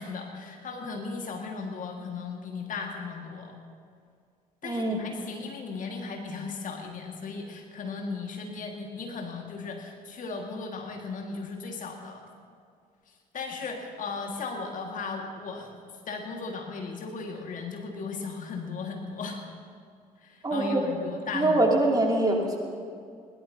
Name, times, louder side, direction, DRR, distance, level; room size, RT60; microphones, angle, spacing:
voice 1, 0.0-3.6 4.6-12.2 13.1-15.8 16.1-19.4 20.2-21.6, left 4 dB, 45° left, 2 dB, 1.9 m, -36 dB
voice 2, 4.6-5.0 20.4-20.8 21.3-22.6, right 2 dB, 20° right, 0 dB, 2.7 m, -24 dB
20.5 x 18.0 x 2.8 m, 2.2 s
figure-of-eight pair, 50°, 19 cm